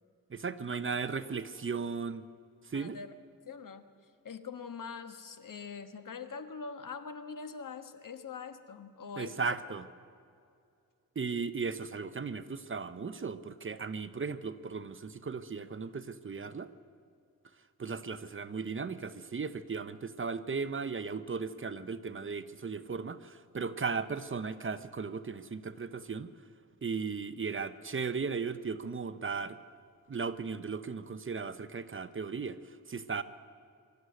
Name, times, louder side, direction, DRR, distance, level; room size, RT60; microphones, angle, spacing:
voice 1, 0.3-2.3 2.7-3.0 9.2-9.9 11.2-16.7 17.8-26.3 26.8-29.6 30.1-33.2, right 5 dB, 35° right, 12 dB, 0.8 m, -36 dB
voice 2, 2.7-3.1 3.5-3.9 4.2-9.5, left 5 dB, 65° left, 8 dB, 1.4 m, -43 dB
23.5 x 13.0 x 9.6 m, 2.4 s
wide cardioid pair, 115°, 34 cm